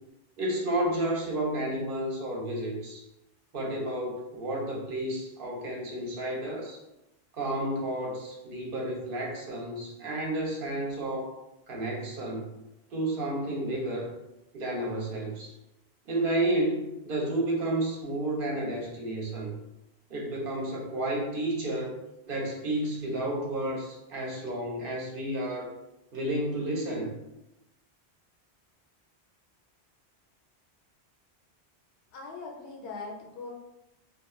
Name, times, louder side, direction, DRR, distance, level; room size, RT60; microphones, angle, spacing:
voice 1, 0.4-3.0 3.5-6.8 7.3-11.4 11.7-12.5 12.9-14.1 14.5-15.5 16.1-19.5 20.1-22.0 22.3-25.7 26.1-27.1, right 1 dB, 60° right, -1 dB, 0.7 m, -31 dB
voice 2, 32.1-33.5, left 3 dB, 85° left, -1 dB, 0.9 m, -40 dB
2.3 x 2.2 x 3.0 m, 0.90 s
omnidirectional pair, 1.1 m